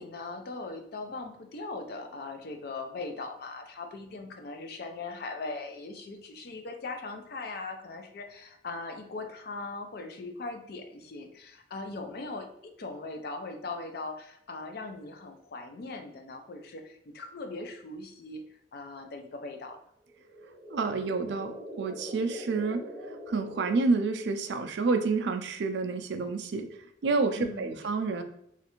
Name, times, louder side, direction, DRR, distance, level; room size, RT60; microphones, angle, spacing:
voice 1, 0.0-18.4 18.7-19.8 27.3-27.7, left 3 dB, 55° left, 5 dB, 0.4 m, -40 dB
sound 1, 20.1-24.5, left 1 dB, 10° left, 0.7 m, -43 dB
voice 2, 20.7-21.5 21.8-22.8 23.3-26.7 27.0-28.2, right 4 dB, 65° right, 7 dB, 0.4 m, -28 dB
3.1 x 2.5 x 2.9 m, 0.72 s
head